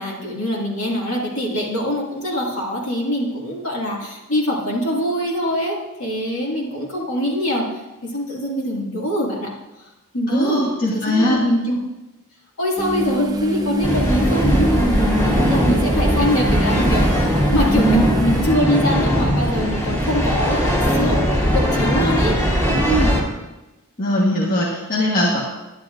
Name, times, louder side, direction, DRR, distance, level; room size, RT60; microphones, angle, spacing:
voice 1, 0.0-7.7 8.0-9.5 10.1-10.6 10.9-11.8 12.6-20.6 20.9-22.4, left 1 dB, 65° left, -4 dB, 2.2 m, -23 dB
voice 2, 10.3-11.4 17.7-18.0 22.8-23.1 24.0-25.4, equal, 40° left, -5 dB, 1.4 m, -20 dB
sound 1, 12.8-18.5, right 1 dB, 15° right, 0.5 m, -26 dB
sound 2, 13.8-23.2, equal, 15° left, 2.2 m, -19 dB
11.0 x 10.5 x 2.6 m, 1.0 s
head